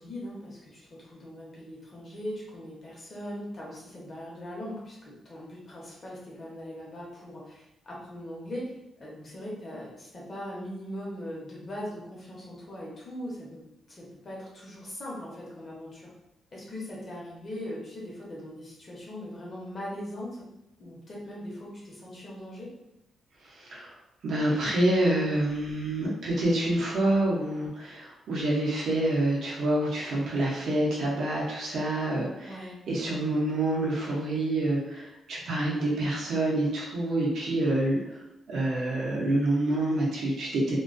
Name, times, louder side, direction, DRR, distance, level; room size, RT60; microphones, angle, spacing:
voice 1, 0.0-13.6 13.9-16.1 16.5-20.4 20.8-22.7 32.4-32.8, left 1 dB, 35° left, -4 dB, 0.7 m, -40 dB
voice 2, 23.4-23.9 24.2-40.8, right 1 dB, 70° right, -5 dB, 0.5 m, -27 dB
2.3 x 2.2 x 2.4 m, 0.89 s
wide cardioid pair, 145°, 0 cm